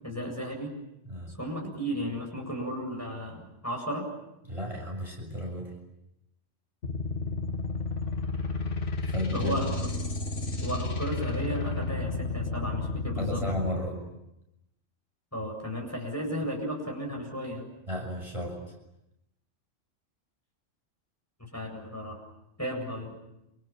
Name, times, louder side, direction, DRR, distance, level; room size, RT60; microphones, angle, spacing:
voice 1, 0.0-0.7 1.4-4.1 9.3-9.7 10.6-13.4 15.3-17.7 21.4-22.2 22.6-23.1, equal, 10° left, 1 dB, 8.0 m, -34 dB
voice 2, 4.4-5.7 9.0-9.6 13.2-14.0 17.9-18.7, equal, 25° right, 0 dB, 7.3 m, -33 dB
sound 1, 6.8-13.7, left 3 dB, 65° left, 2.2 m, -32 dB
29.0 x 28.0 x 7.3 m, 0.87 s
omnidirectional pair, 1.3 m